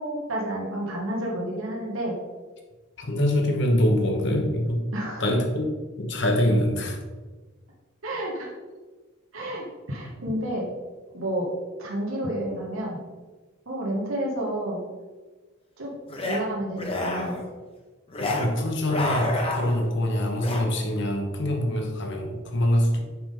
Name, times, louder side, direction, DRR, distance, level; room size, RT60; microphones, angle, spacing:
voice 1, 0.0-2.1 4.9-5.3 8.0-8.5 9.3-10.7 11.1-11.5 11.8-13.0 13.7-14.8 15.8-17.3, right 1 dB, 70° right, -3 dB, 1.1 m, -30 dB
voice 2, 3.0-4.9 5.2-7.0 18.2-23.0, left 1 dB, 55° left, 3 dB, 1.0 m, -24 dB
sound 1, 16.1-16.4 16.7-17.5 18.1-18.5 18.8-19.9 20.4-20.7, left 2 dB, 25° left, 0.8 m, -29 dB
5.8 x 5.1 x 3.8 m, 1.3 s
head